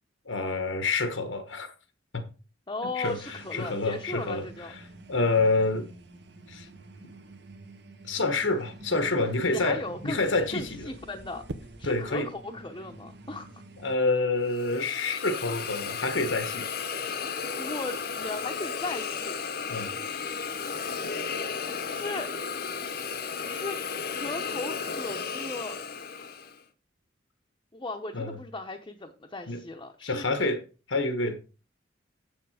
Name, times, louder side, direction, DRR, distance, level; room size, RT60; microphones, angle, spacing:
voice 1, 0.2-1.7 2.1-2.2 3.0-4.8 5.1-5.9 6.5-6.7 8.0-10.9 11.8-12.3 13.8-16.7 19.7-20.0 28.1-28.4 29.5-29.6 30.0-30.6 30.9-31.4, left 3 dB, 85° left, 1.4 m, -28 dB
voice 2, 2.7-4.7 9.5-10.2 10.5-11.4 11.8-13.5 17.6-19.4 21.9-22.3 23.4-23.8 24.1-25.8 26.1-26.3 27.7-30.3, left 2 dB, 25° left, 0.9 m, -37 dB
sound 1, 3.0-14.0, right 2 dB, 60° right, 1.3 m, -48 dB
sound 2, 11.5-12.0 14.0-14.3, right 2 dB, 80° right, 0.8 m, -41 dB
Hiss, 14.5-26.6, left 5 dB, 55° left, 0.9 m, -34 dB
8.1 x 7.1 x 5.0 m
head